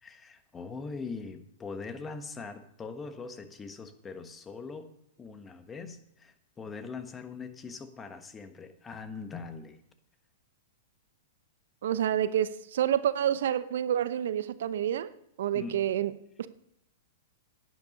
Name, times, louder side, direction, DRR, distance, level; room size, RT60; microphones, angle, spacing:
voice 1, 0.0-4.9 5.2-9.8 15.5-15.8, left 4 dB, 20° left, 1.2 m, -42 dB
voice 2, 11.8-15.1 15.4-16.1 16.4-16.5, right 10 dB, 70° right, 0.6 m, -28 dB
10.5 x 9.5 x 5.3 m
hypercardioid pair, 115°, 0 cm